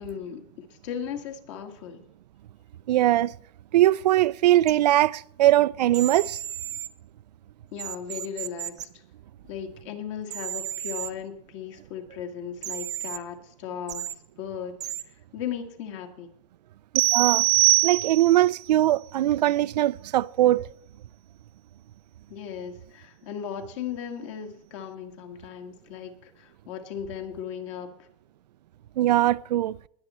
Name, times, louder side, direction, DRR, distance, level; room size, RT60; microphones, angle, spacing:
voice 1, 0.0-2.0 7.7-9.0 9.4-14.0 14.4-14.8 15.3-16.3 22.3-28.1, left 8 dB, 50° left, 2.1 m, -37 dB
voice 2, 2.9-3.3 3.7-6.4 17.1-17.4 17.8-20.7 29.0-29.8, right 14 dB, 85° right, 0.4 m, -21 dB
sound 1, 4.7-4.8 5.9-6.9 7.8-8.8 10.3-11.1 12.6-13.2 13.9-14.1 14.8-15.0, right 12 dB, 20° right, 0.6 m, -34 dB
sound 2, 17.0-18.5, right 21 dB, 60° right, 0.8 m, -21 dB
21.0 x 7.4 x 4.4 m
supercardioid pair, 160°, 21 cm